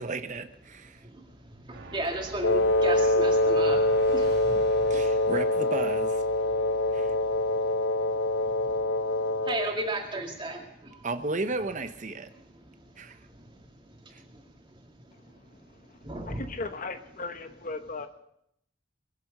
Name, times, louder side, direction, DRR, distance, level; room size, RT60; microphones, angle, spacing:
voice 1, 0.0-1.0 4.9-6.2 6.9-7.1 11.0-12.3 13.0-13.2 14.1-14.2, right 2 dB, 40° right, 0.9 m, -33 dB
voice 2, 0.9-5.3 6.4-11.1 12.3-16.4, right 2 dB, 25° right, 2.1 m, -38 dB
sound 1, 1.7-10.3, right 2 dB, 60° right, 1.7 m, -48 dB
Wind instrument woodwind instrument, 2.4-9.7, left 2 dB, 75° left, 0.8 m, -25 dB
voice 3, 16.3-18.1, left 3 dB, 45° left, 1.1 m, -37 dB
21.5 x 7.7 x 6.6 m
head